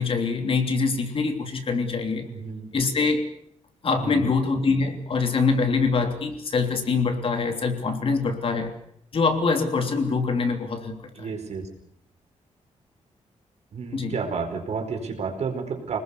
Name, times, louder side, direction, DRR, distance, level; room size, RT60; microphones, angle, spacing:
voice 1, 0.0-2.2 2.7-3.2 3.8-8.7 9.1-11.3 13.9-14.1, left 4 dB, 50° left, 5 dB, 3.1 m, -24 dB
voice 2, 2.2-2.7 4.0-4.3 11.1-11.7 13.7-16.0, right 5 dB, 65° right, 5 dB, 4.7 m, -31 dB
27.0 x 19.5 x 6.9 m, 0.70 s
wide cardioid pair, 155°, 12 cm